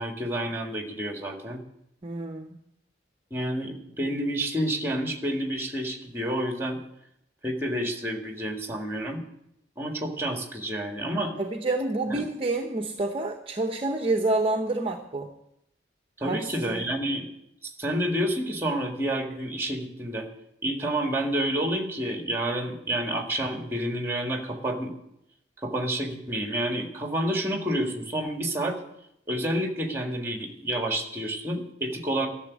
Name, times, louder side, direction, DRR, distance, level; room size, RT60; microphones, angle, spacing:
voice 1, 0.0-1.6 3.3-6.8 7.4-9.2 9.8-11.3 12.1-12.2 16.2-17.3 17.6-20.3 20.6-24.9 25.6-28.8 29.3-32.3, right 1 dB, 15° right, 3 dB, 1.8 m, -29 dB
voice 2, 2.0-2.5 11.4-15.3 16.3-16.8, right 2 dB, 30° right, 2 dB, 0.8 m, -28 dB
12.0 x 7.1 x 9.5 m, 0.81 s
head